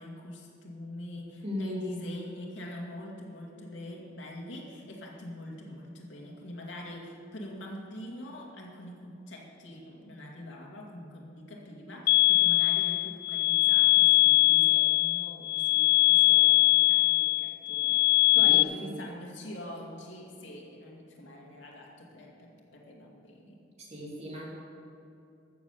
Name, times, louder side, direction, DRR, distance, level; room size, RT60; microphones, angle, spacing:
voice 1, 0.0-18.1 18.3-23.6, left 1 dB, 90° left, -1 dB, 2.4 m, -44 dB
voice 2, 1.4-1.9 18.3-19.0 23.9-24.5, left 1 dB, 35° right, -4 dB, 2.9 m, -36 dB
sound 1, 12.1-18.6, left 21 dB, 55° left, 0.3 m, -22 dB
14.0 x 7.4 x 7.0 m, 2.6 s
head